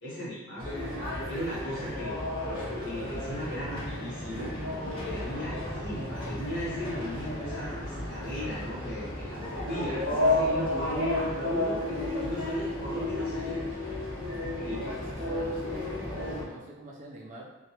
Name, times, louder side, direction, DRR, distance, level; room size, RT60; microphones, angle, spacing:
voice 1, 0.0-0.7 1.3-2.2 2.8-4.6 5.1-11.8 12.2-13.6 14.4-15.1, equal, 55° left, -8 dB, 1.0 m, -37 dB
sound 1, 0.6-16.4, left 1 dB, 25° left, 0.7 m, -32 dB
voice 2, 14.6-17.5, right 1 dB, 35° right, -2 dB, 0.3 m, -43 dB
2.2 x 2.0 x 2.8 m, 1.1 s
head